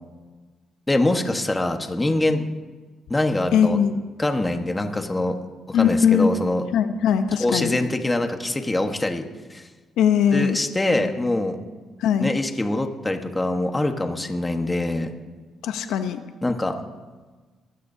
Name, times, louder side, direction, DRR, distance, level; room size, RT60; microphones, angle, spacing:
voice 1, 0.9-2.5 3.1-3.8 4.2-5.3 5.7-6.6 7.4-9.2 9.5-9.6 10.3-11.6 12.2-15.1 16.4-16.8, left 2 dB, 15° left, 5 dB, 1.4 m, -24 dB
voice 2, 3.5-4.0 5.7-6.3 6.7-7.8 10.0-10.6 12.0-12.3 15.6-16.2, left 8 dB, 85° left, 8 dB, 0.8 m, -20 dB
22.5 x 16.0 x 2.8 m, 1.3 s
cardioid pair, 90°, 0 cm